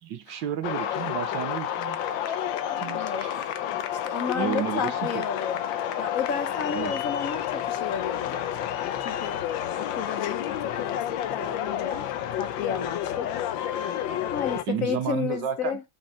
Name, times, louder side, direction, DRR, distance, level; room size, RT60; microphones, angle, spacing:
voice 1, 0.0-2.4 2.8-3.3 4.3-5.3 6.7-6.9 14.7-15.8, right 9 dB, 75° right, 1.6 m, -32 dB
sound 1, 0.6-14.6, left 10 dB, 90° left, 1.5 m, -30 dB
voice 2, 2.7-3.3 4.0-5.7 6.0-9.4 9.8-11.0 11.3-12.1 12.4-13.3 14.3-15.8, left 7 dB, 55° left, 1.1 m, -32 dB
5.8 x 5.1 x 4.3 m
omnidirectional pair, 2.0 m